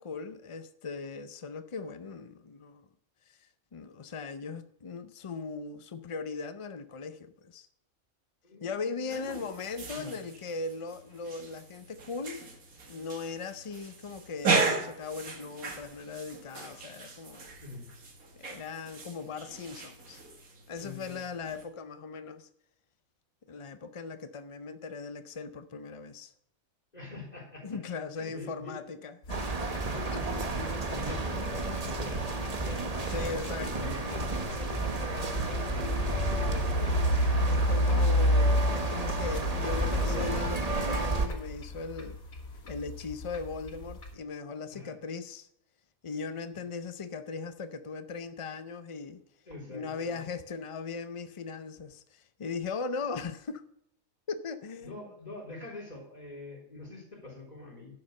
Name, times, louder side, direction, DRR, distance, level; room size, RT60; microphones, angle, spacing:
voice 1, 0.0-2.9 3.3-3.4 3.7-7.7 8.6-12.4 12.9-17.5 18.4-20.2 20.7-22.5 23.5-26.3 27.6-29.4 30.1-30.2 33.1-33.9 37.5-42.2 42.7-45.5 46.0-49.2 49.7-53.6 54.3-55.0, left 4 dB, 55° left, 0.3 m, -39 dB
voice 2, 8.4-9.4 9.9-10.2 17.6-17.8 20.8-21.2 26.9-27.7 28.2-28.9 29.8-37.2 37.7-38.1 44.7-44.9 49.5-50.2 54.8-57.9, left 2 dB, 30° left, 3.8 m, -45 dB
sound 1, 9.1-21.6, right 4 dB, 85° right, 2.1 m, -36 dB
sound 2, 29.2-44.1, left 1 dB, 85° left, 2.3 m, -31 dB
sound 3, 29.3-41.3, right 3 dB, 30° right, 1.2 m, -32 dB
11.0 x 6.6 x 6.5 m
omnidirectional pair, 1.4 m